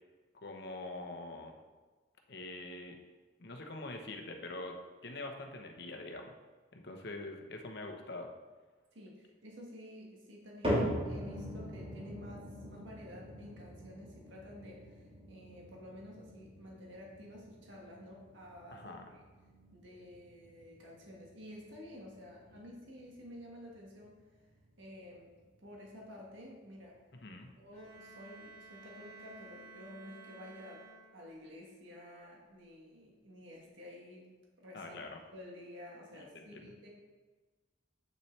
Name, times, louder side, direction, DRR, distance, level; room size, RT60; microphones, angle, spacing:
voice 1, 0.4-1.5 2.3-3.0 3.4-6.3 6.7-8.3 18.7-19.1 22.5-22.6 27.2-27.5 34.7-35.2 36.1-36.7, left 2 dB, 60° left, 3 dB, 1.0 m, -44 dB
voice 2, 8.9-19.2 19.7-24.2 24.8-25.3 25.6-27.0 27.6-30.8 31.1-34.3 34.6-35.0 35.3-36.9, left 1 dB, 75° right, -2 dB, 1.6 m, -51 dB
sound 1, 10.6-27.0 27.3-27.8 28.4-28.5 29.3-29.4, equal, 30° right, 2.4 m, -42 dB
Bowed string instrument, 27.7-31.5, right 3 dB, 55° right, 2.4 m, -54 dB
8.3 x 7.1 x 3.3 m, 1.3 s
head